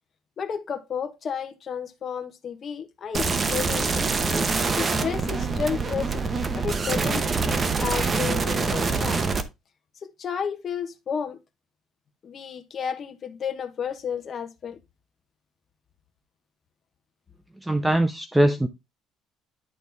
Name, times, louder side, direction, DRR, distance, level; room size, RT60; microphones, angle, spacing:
voice 1, 0.4-3.9 4.7-6.3 6.5-9.2 10.0-11.4 12.2-14.8, left 7 dB, 40° left, 1.2 m, -32 dB
sound 1, 3.1-9.4, right 4 dB, 25° right, 0.9 m, -25 dB
voice 2, 17.6-18.7, right 1 dB, 5° right, 0.6 m, -21 dB
11.0 x 4.1 x 3.5 m
cardioid pair, 130°, 0 cm